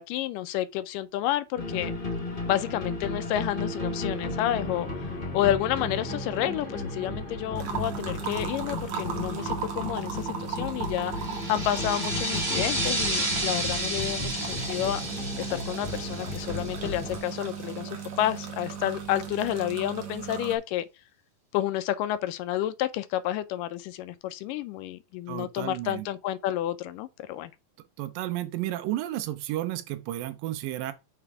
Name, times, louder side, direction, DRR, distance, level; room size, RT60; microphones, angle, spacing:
voice 1, 0.0-1.9 2.5-11.1 11.5-15.0 15.4-20.9 21.5-27.5, left 12 dB, 80° left, 2.1 m, -30 dB
sound 1, 1.6-17.2, left 2 dB, 30° left, 0.9 m, -34 dB
sound 2, 7.6-20.6, right 7 dB, 60° right, 2.4 m, -37 dB
sound 3, 11.1-17.4, right 1 dB, 15° right, 1.3 m, -32 dB
voice 2, 25.3-26.1 28.0-30.9, right 14 dB, 85° right, 2.4 m, -32 dB
6.9 x 3.5 x 4.7 m
omnidirectional pair, 4.0 m